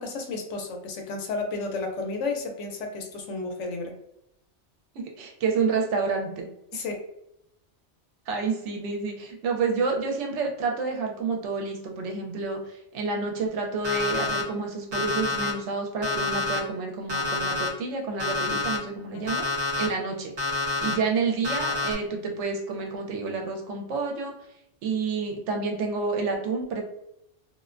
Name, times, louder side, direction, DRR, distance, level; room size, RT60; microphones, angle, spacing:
voice 1, 0.0-3.9 6.7-7.0 19.1-19.4, left 3 dB, 80° left, 3 dB, 0.9 m, -32 dB
voice 2, 4.9-6.8 8.3-19.4 19.8-24.4 24.8-26.8, right 4 dB, 80° right, 2 dB, 0.9 m, -29 dB
Alarm, 13.8-14.4 14.9-15.5 16.0-16.6 17.1-17.7 18.2-18.8 19.3-19.9 20.4-20.9 21.4-21.9, left 4 dB, 45° right, 0.3 m, -27 dB
2.4 x 2.1 x 2.4 m, 0.81 s
omnidirectional pair, 1.2 m